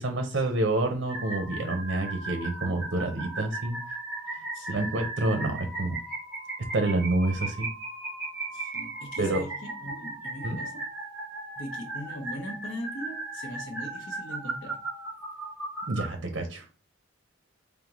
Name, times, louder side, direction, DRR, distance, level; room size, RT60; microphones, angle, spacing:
voice 1, 0.0-3.8 4.3-4.4 4.7-6.0 6.7-7.7 9.2-9.4 10.4-10.6 15.9-16.7, right 2 dB, 70° right, 0.6 m, -28 dB
sound 1, 1.1-16.1, right 2 dB, 5° right, 1.3 m, -37 dB
voice 2, 4.5-5.0 8.5-10.9 11.6-14.8, equal, 90° left, 1.0 m, -40 dB
3.6 x 3.5 x 3.0 m
head